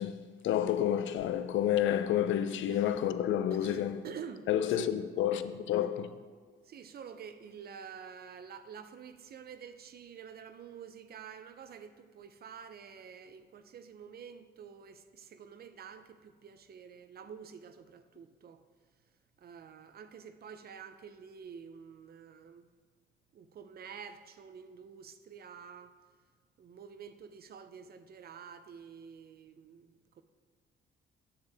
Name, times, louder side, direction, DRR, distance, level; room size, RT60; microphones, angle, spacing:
voice 1, 0.0-4.0 4.5-6.1, left 10 dB, 75° left, 0.5 m, -30 dB
voice 2, 3.5-4.5 4.7-4.9 6.7-18.6 19.4-22.7 23.3-25.9 26.6-30.2, right 7 dB, 50° right, 0.6 m, -48 dB
9.4 x 6.7 x 3.5 m
cardioid pair, 90°, 20 cm